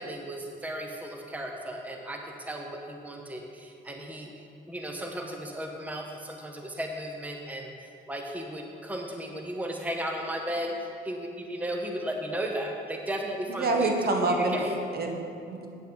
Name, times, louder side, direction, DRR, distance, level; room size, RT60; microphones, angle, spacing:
voice 1, 0.0-4.3 4.7-7.7 8.1-13.9 14.2-14.8, right 1 dB, 5° right, 2 dB, 0.9 m, -35 dB
voice 2, 13.5-14.6 14.9-15.7, right 3 dB, 50° right, 2 dB, 1.2 m, -27 dB
8.7 x 8.2 x 3.9 m, 2.6 s
cardioid pair, 90°, 20 cm